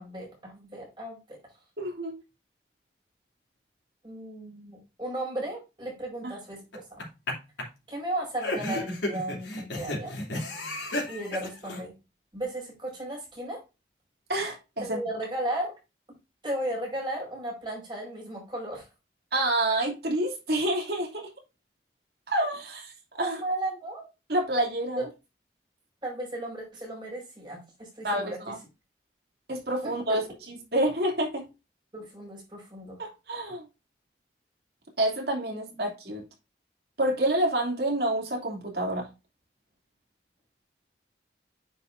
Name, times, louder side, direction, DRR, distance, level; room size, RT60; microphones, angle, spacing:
voice 1, 0.0-1.4 4.0-7.0 7.9-10.1 11.1-11.9 12.3-13.6 14.8-15.8 16.4-18.9 23.2-24.1 26.0-28.5 29.8-30.2 31.9-33.0 35.5-35.6, right 1 dB, 25° right, 5.0 m, -35 dB
voice 2, 1.8-2.2 14.3-15.0 19.3-21.3 22.3-23.4 24.3-25.1 28.0-28.5 29.5-31.4 33.0-33.6 35.0-36.2 37.0-39.1, right 1 dB, 60° right, 2.8 m, -28 dB
sound 1, 6.7-7.3 7.6-7.7 8.4-11.8, left 1 dB, 90° left, 3.0 m, -32 dB
9.2 x 5.7 x 2.6 m
head